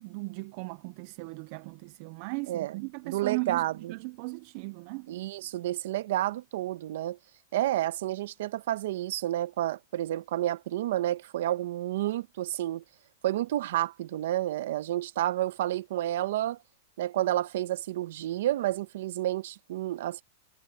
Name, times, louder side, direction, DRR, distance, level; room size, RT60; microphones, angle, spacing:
voice 1, 0.0-5.1, right 27 dB, 50° right, 0.5 m, -37 dB
voice 2, 2.5-2.8 3.0-3.9 5.1-7.2 7.5-12.8 13.2-16.6 17.0-20.2, right 14 dB, 70° right, 1.3 m, -30 dB
hypercardioid pair, 135°, 0 cm